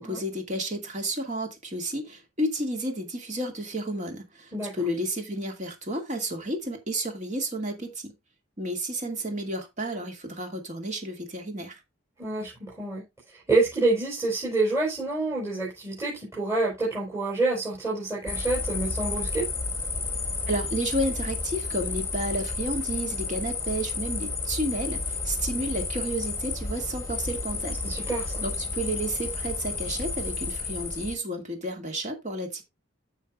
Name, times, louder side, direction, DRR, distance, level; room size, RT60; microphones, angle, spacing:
voice 1, 0.0-8.1 8.6-11.8 20.5-27.8 28.4-32.6, right 1 dB, 35° right, 2.4 m, -31 dB
voice 2, 4.5-4.8 12.2-13.0 13.5-19.5 27.6-28.5, right 2 dB, 15° right, 4.7 m, -27 dB
sound 1, 18.3-31.2, left 3 dB, 15° left, 1.4 m, -31 dB
14.5 x 5.8 x 2.5 m
head